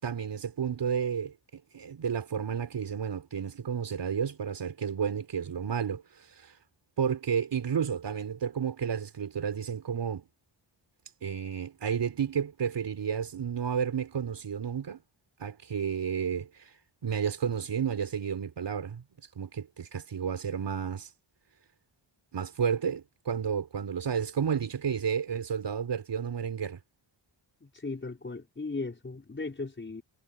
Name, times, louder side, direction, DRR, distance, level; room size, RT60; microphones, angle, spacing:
voice 1, 0.0-6.5 7.0-10.2 11.2-15.0 15.4-16.7 17.0-19.0 19.4-21.1 22.3-26.8, right 7 dB, 60° right, 4.2 m, -31 dB
voice 2, 27.6-30.0, left 3 dB, 25° left, 5.4 m, -37 dB
wide cardioid pair, 140°, 47 cm